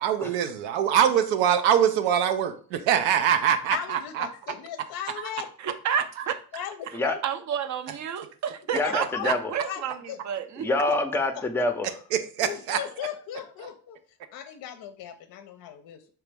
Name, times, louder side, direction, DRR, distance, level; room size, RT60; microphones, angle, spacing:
voice 1, 0.0-4.3 12.4-12.8, right 9 dB, 85° right, 9 dB, 0.6 m, -23 dB
voice 2, 3.7-5.5 6.5-7.2 7.5-7.6 8.8-9.3 9.6-10.2 12.4-14.0 14.3-16.1, left 10 dB, 55° left, 8 dB, 0.5 m, -37 dB
voice 3, 5.6-6.3 7.2-10.7, right 8 dB, 40° right, 11 dB, 0.5 m, -30 dB
voice 4, 8.7-9.5 10.6-11.9, left 2 dB, 5° left, 7 dB, 0.5 m, -26 dB
3.5 x 2.9 x 3.3 m, 0.43 s
supercardioid pair, 70°, 44 cm